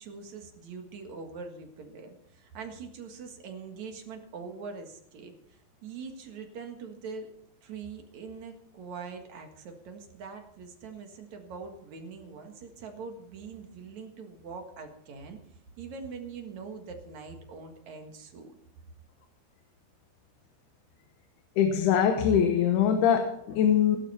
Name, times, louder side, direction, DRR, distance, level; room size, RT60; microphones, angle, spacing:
voice 1, 0.0-7.3 7.6-15.4 15.8-18.5, right 5 dB, 55° right, 4 dB, 2.7 m, -43 dB
voice 2, 21.6-24.0, left 8 dB, 90° left, 6 dB, 3.1 m, -23 dB
17.0 x 12.0 x 4.3 m, 0.70 s
omnidirectional pair, 4.4 m